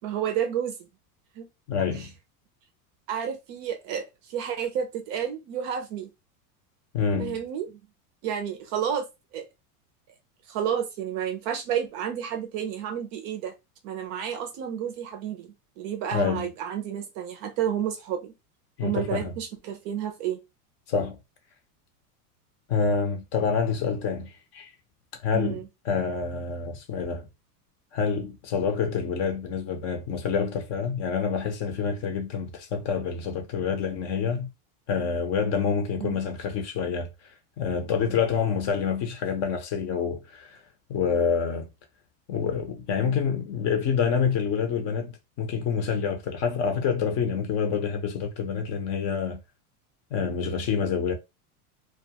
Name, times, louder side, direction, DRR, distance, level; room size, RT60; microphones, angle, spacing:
voice 1, 0.0-0.8 1.4-1.5 1.9-2.1 3.1-6.1 7.2-7.7 8.2-9.1 9.3-9.5 10.5-13.5 13.8-18.3 18.8-20.4 25.3-25.7 36.0-36.2, right 9 dB, 40° right, 0.5 m, -31 dB
voice 2, 1.7-2.1 6.9-7.4 16.1-16.5 18.8-19.3 20.9-21.2 22.7-24.7 25.2-27.3 27.9-34.5 34.9-37.1 37.6-40.6 40.9-41.7 42.3-49.4 50.1-51.1, left 6 dB, 35° left, 0.6 m, -27 dB
2.3 x 2.2 x 2.8 m
supercardioid pair, 140°, 45 cm